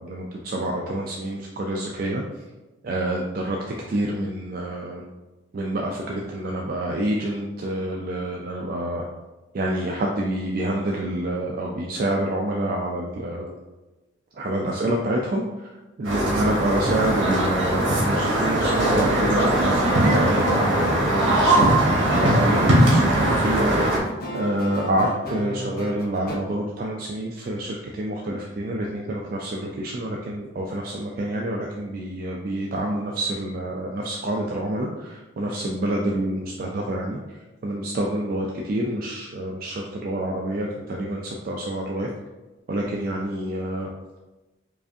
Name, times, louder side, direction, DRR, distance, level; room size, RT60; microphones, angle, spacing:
voice 1, 0.0-2.2 2.8-3.6 3.9-5.0 5.5-9.1 9.5-13.5 14.4-15.4 16.0-21.7 22.1-23.8 24.3-37.2 37.6-42.1 42.7-43.9, right 1 dB, 45° right, -1 dB, 0.3 m, -27 dB
sound 1, 16.0-24.0, right 1 dB, 75° right, 1.1 m, -20 dB
sound 2, 18.0-26.3, right 1 dB, 50° left, 0.8 m, -34 dB
4.7 x 2.5 x 2.6 m, 1.1 s
head